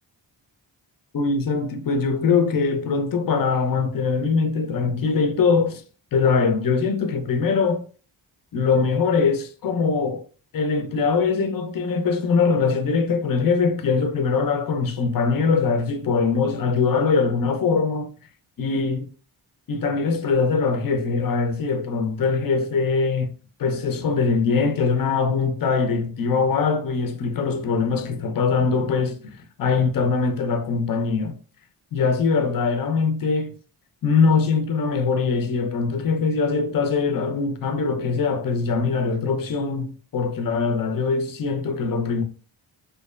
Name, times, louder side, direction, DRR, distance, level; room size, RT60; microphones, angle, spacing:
voice 1, 1.1-5.8 6.1-7.8 8.5-10.2 10.5-18.1 18.6-19.1 19.7-23.3 23.6-31.3 31.9-33.5 34.0-42.2, left 5 dB, 45° left, 0.5 m, -22 dB
2.5 x 2.1 x 2.3 m
cardioid pair, 40°, 50 cm